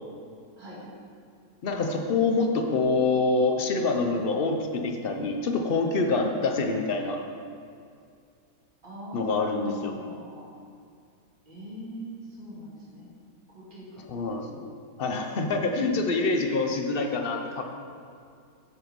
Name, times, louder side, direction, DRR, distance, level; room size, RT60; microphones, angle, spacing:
voice 1, 1.6-7.2 9.1-9.9 14.1-14.6 15.0-17.6, left 3 dB, 60° left, 3 dB, 0.6 m, -26 dB
voice 2, 8.8-10.5 11.4-13.1 13.5-14.1, equal, 30° right, -8 dB, 2.5 m, -41 dB
9.9 x 4.6 x 5.2 m, 2.4 s
omnidirectional pair, 1.8 m